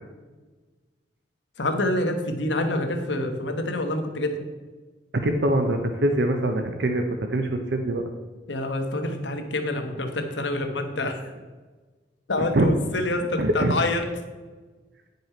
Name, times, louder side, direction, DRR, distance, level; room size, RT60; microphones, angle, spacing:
voice 1, 1.6-4.4 8.5-11.2 12.3-14.0, left 2 dB, 90° left, 5 dB, 1.1 m, -27 dB
voice 2, 5.2-7.0 7.3-8.0 12.4-12.7 13.4-13.7, right 1 dB, 65° right, 5 dB, 0.7 m, -23 dB
9.6 x 5.4 x 4.4 m, 1.3 s
head